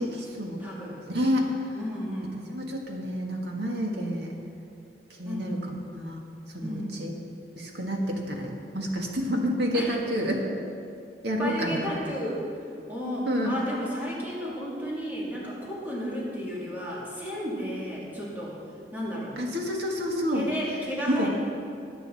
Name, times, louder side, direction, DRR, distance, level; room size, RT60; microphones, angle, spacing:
voice 1, 0.0-0.6 1.1-1.5 2.5-4.4 5.2-6.2 6.5-7.1 7.6-10.4 11.2-11.9 13.3-13.6 19.4-20.5 21.1-21.4, equal, 70° right, 0 dB, 1.8 m, -29 dB
voice 2, 0.6-1.0 1.7-2.4 5.2-5.5 6.6-7.0 9.7-9.9 11.4-12.5 12.9-18.6 18.9-19.4 20.3-21.4, equal, 10° right, -7 dB, 2.9 m, -33 dB
19.5 x 8.6 x 4.2 m, 2.5 s
head